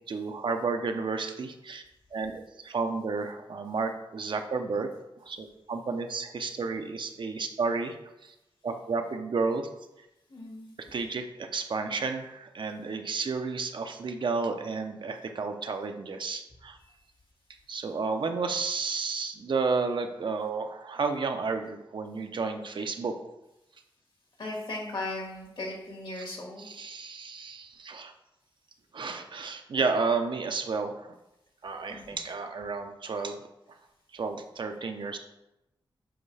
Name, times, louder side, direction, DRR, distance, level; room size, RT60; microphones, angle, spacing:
voice 1, 0.1-1.8 2.1-4.9 5.2-8.0 8.2-8.3 8.6-9.7 10.9-16.8 17.7-23.1 26.6-28.1 28.9-31.2 31.6-33.4 34.1-35.2, right 4 dB, 60° right, 6 dB, 0.6 m, -31 dB
voice 2, 10.3-10.7 16.9-17.0 24.4-26.7 31.9-32.2, left 2 dB, 65° left, -1 dB, 1.9 m, -37 dB
7.8 x 4.5 x 3.3 m, 0.92 s
wide cardioid pair, 95°, 9 cm